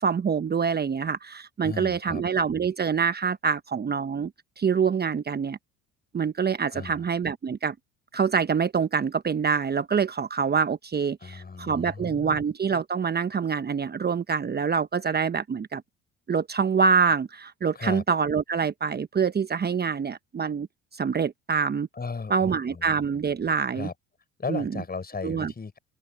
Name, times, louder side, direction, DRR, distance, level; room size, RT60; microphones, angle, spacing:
voice 1, 0.0-4.3 4.6-5.6 6.1-7.7 8.1-15.8 16.3-20.7 20.9-21.9 22.3-23.9 24.5-24.8 25.2-25.5, right 6 dB, 30° right, 1.1 m, -25 dB
voice 2, 1.6-2.2 6.7-7.0 11.2-12.4 17.7-18.0 21.9-22.9 23.7-23.9 24.4-25.8, left 4 dB, 25° left, 6.5 m, -36 dB
open air
hypercardioid pair, 65°, 34 cm